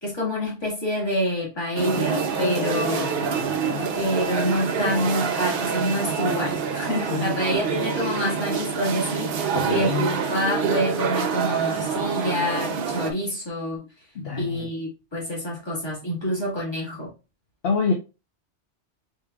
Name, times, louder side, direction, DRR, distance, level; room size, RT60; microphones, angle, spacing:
voice 1, 0.0-3.2 3.9-13.8 14.4-17.1, equal, 20° left, 1.9 m, -27 dB
sound 1, 1.8-13.1, right 6 dB, 60° right, 0.8 m, -26 dB
voice 2, 3.2-4.0 7.1-7.4 9.5-10.1 14.1-14.7 17.6-17.9, left 4 dB, 60° left, 0.9 m, -27 dB
4.4 x 3.6 x 2.3 m
omnidirectional pair, 1.2 m